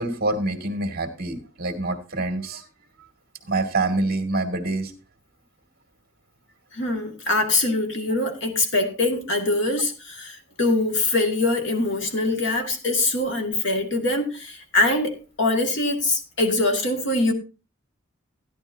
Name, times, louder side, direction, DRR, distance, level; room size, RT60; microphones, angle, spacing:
voice 1, 0.0-2.7 3.4-4.9 12.6-12.7, right 2 dB, 45° right, 5 dB, 1.9 m, -26 dB
voice 2, 6.7-17.3, left 2 dB, 60° left, 3 dB, 2.0 m, -23 dB
14.5 x 10.5 x 2.7 m, 0.32 s
head